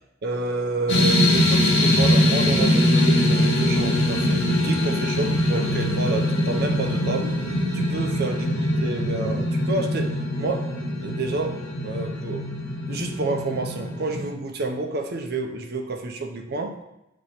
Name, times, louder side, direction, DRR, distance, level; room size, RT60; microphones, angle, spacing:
voice 1, 0.2-7.4 7.7-10.7 11.0-11.6 11.8-12.5 12.8-16.8, right 2 dB, 55° right, 4 dB, 0.7 m, -29 dB
sound 1, 0.9-14.3, left 1 dB, 65° left, 1.1 m, -22 dB
sound 2, 2.0-11.1 11.4-11.5, equal, 10° right, 0.4 m, -35 dB
8.2 x 3.0 x 4.3 m, 0.89 s
head